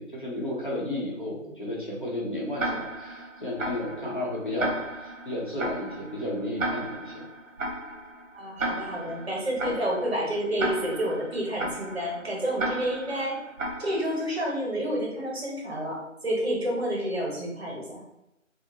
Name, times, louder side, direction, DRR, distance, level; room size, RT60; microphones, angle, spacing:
voice 1, 0.0-7.2, left 1 dB, 40° left, -5 dB, 0.7 m, -33 dB
Tick-tock, 2.6-14.4, right 2 dB, 70° right, 0.9 m, -35 dB
voice 2, 8.3-13.4 13.8-18.0, equal, 50° right, -3 dB, 1.1 m, -29 dB
3.5 x 2.0 x 2.9 m, 0.87 s
figure-of-eight pair, 170°, 39 cm